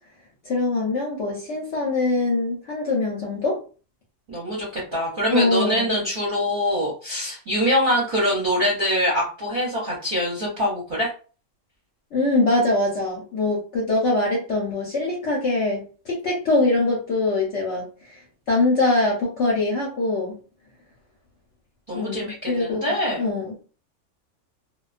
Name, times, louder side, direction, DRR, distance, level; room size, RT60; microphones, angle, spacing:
voice 1, 0.5-3.6 5.3-5.9 12.1-18.2 18.5-20.4 21.9-23.6, left 2 dB, 60° left, -3 dB, 0.9 m, -23 dB
voice 2, 4.3-11.1 21.9-23.3, equal, 45° right, -5 dB, 0.8 m, -24 dB
2.3 x 2.2 x 2.4 m, 0.37 s
omnidirectional pair, 1.5 m